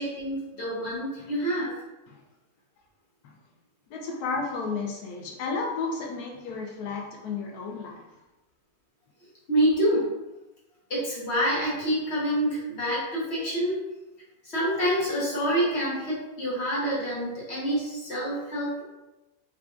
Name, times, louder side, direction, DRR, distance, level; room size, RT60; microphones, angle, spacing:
voice 1, 0.0-1.7 9.5-10.1 10.9-13.8 14.4-18.8, equal, 50° left, -6 dB, 1.1 m, -27 dB
voice 2, 3.9-8.0, left 4 dB, 85° left, 0 dB, 1.2 m, -32 dB
4.5 x 2.4 x 2.4 m, 1.0 s
omnidirectional pair, 1.6 m